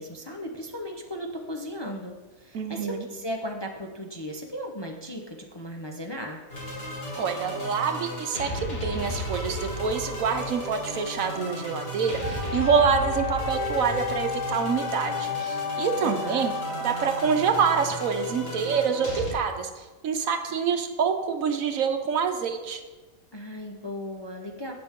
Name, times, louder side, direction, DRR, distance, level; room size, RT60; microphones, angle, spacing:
voice 1, 0.0-6.4 16.0-16.5 23.3-24.7, equal, 25° left, 1 dB, 0.6 m, -36 dB
voice 2, 2.5-3.0 7.2-16.5 16.8-22.8, right 6 dB, 70° right, 6 dB, 1.2 m, -26 dB
sound 1, 6.5-19.3, left 1 dB, 40° left, 2.4 m, -34 dB
Wind instrument woodwind instrument, 12.2-18.1, left 5 dB, 80° left, 4.4 m, -33 dB
16.5 x 6.0 x 3.6 m, 1.2 s
omnidirectional pair, 1.5 m